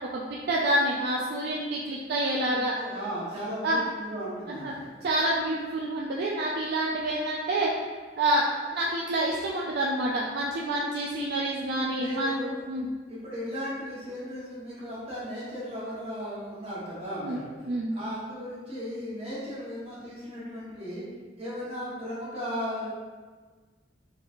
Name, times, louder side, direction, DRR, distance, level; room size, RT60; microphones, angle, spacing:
voice 1, 0.1-2.8 3.6-3.8 4.5-4.7 5.0-7.7 8.2-12.3 12.7-12.9 17.2-17.4 17.7-17.9, right 1 dB, 55° right, -3 dB, 0.3 m, -28 dB
voice 2, 2.5-4.9 12.0-12.6 13.1-17.5 17.9-21.0 21.4-22.9, equal, 30° right, -8 dB, 1.2 m, -36 dB
3.9 x 2.9 x 2.5 m, 1.4 s
head